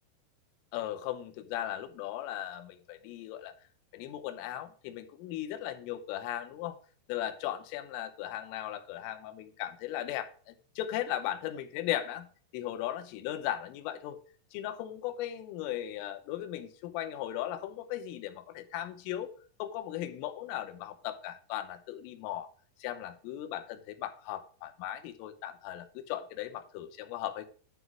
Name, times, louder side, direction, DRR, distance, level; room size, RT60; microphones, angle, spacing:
voice 1, 0.7-3.5 3.9-6.8 7.1-14.2 14.5-19.3 19.6-22.5 22.8-27.5, left 12 dB, 85° left, 9 dB, 3.4 m, -37 dB
10.5 x 4.0 x 6.0 m, 0.41 s
omnidirectional pair, 5.7 m